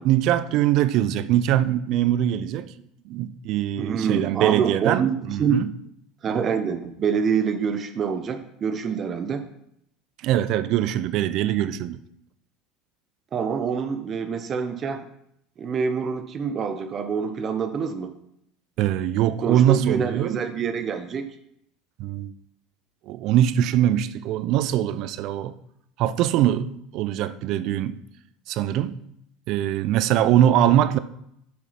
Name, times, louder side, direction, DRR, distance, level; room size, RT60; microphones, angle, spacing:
voice 1, 0.0-2.7 3.1-5.7 10.2-12.0 18.8-20.4 22.0-22.3 23.1-25.5 26.0-27.9 28.5-29.0 29.5-31.0, right 12 dB, 60° right, 0.6 m, -22 dB
voice 2, 3.8-5.6 6.2-9.4 13.3-15.1 15.6-18.1 19.4-21.2, right 6 dB, 40° right, 1.0 m, -26 dB
8.1 x 5.9 x 5.9 m
hypercardioid pair, 90°, 0 cm